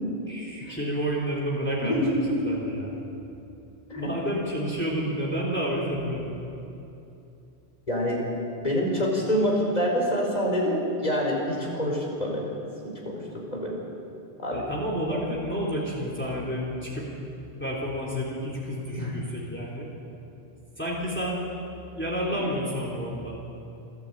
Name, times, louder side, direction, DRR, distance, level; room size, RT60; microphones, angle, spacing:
voice 1, 0.3-2.0 2.4-2.9 3.9-6.5 14.5-17.1 17.6-19.9 20.8-21.4 22.0-23.4, equal, 10° left, -4 dB, 3.4 m, -30 dB
voice 2, 1.9-2.4 3.9-4.1 7.9-8.2 8.6-12.5 13.0-13.2 13.5-13.8 14.4-14.6 15.1-15.2 18.9-19.1, equal, 40° left, -1 dB, 4.9 m, -26 dB
29.5 x 12.0 x 8.8 m, 2.8 s
omnidirectional pair, 1.1 m